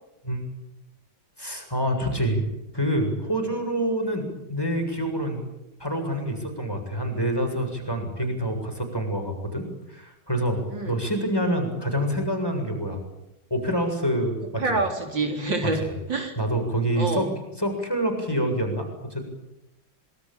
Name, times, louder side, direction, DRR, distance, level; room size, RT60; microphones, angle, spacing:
voice 1, 1.4-2.5 2.7-5.4 5.8-13.0 13.5-14.8 15.6-15.9 16.4-17.3 17.6-19.2, equal, 10° left, 4 dB, 7.4 m, -27 dB
voice 2, 14.6-16.4 17.0-17.3, right 3 dB, 60° right, 3 dB, 4.5 m, -27 dB
26.5 x 24.0 x 9.3 m, 0.87 s
omnidirectional pair, 2.3 m